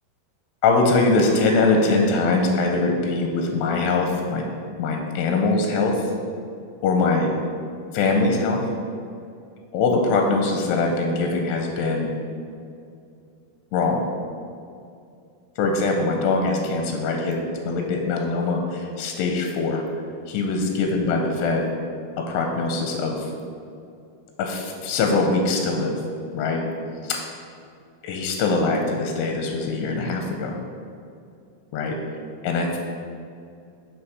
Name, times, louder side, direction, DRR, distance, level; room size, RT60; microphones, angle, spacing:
voice 1, 0.6-4.5 4.8-6.1 6.8-7.3 7.9-8.6 9.7-12.1 13.7-14.0 15.6-19.8 20.3-21.7 22.2-23.3 24.4-26.0 26.3-26.6 27.0-27.2 28.0-30.6 31.7-32.0 32.4-32.8, left 3 dB, 85° left, 2 dB, 2.6 m, -22 dB
6.3 x 6.0 x 4.7 m, 2.5 s
omnidirectional pair, 5.0 m